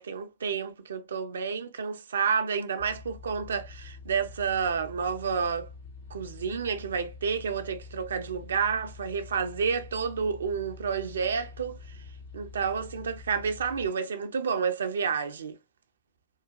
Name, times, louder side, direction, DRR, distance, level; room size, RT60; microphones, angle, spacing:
voice 1, 0.0-5.7 6.1-11.8 12.3-15.6, right 6 dB, 70° right, 0.5 m, -30 dB
sound 1, 2.8-13.9, left 4 dB, 80° left, 2.2 m, -46 dB
3.9 x 2.2 x 2.3 m
figure-of-eight pair, 90°, 0 cm